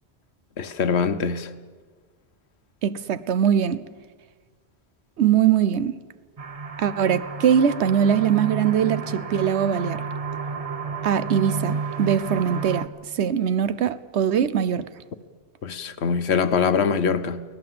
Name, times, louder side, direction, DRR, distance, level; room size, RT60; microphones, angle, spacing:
voice 1, 0.6-1.5 15.6-17.4, left 6 dB, 75° left, 1.2 m, -23 dB
voice 2, 2.8-3.8 5.2-6.0 6.8-10.0 11.0-12.9 13.1-14.9, right 8 dB, 80° right, 1.1 m, -21 dB
sound 1, 6.4-12.9, right 5 dB, 35° right, 0.8 m, -31 dB
24.0 x 17.5 x 7.7 m
omnidirectional pair, 1.1 m